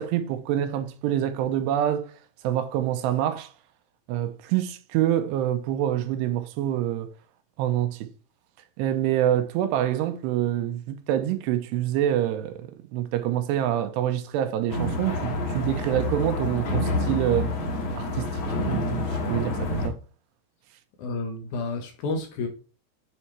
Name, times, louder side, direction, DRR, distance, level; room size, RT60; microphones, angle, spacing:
voice 1, 0.0-2.1 2.4-3.5 4.1-7.1 7.6-8.1 8.8-17.5 18.0-19.0 19.3-20.0, right 11 dB, 85° right, 2.7 m, -26 dB
sound 1, 14.7-19.9, left 1 dB, 55° left, 2.0 m, -28 dB
voice 2, 21.0-22.5, left 3 dB, 75° left, 1.8 m, -30 dB
10.0 x 4.4 x 3.3 m
omnidirectional pair, 5.0 m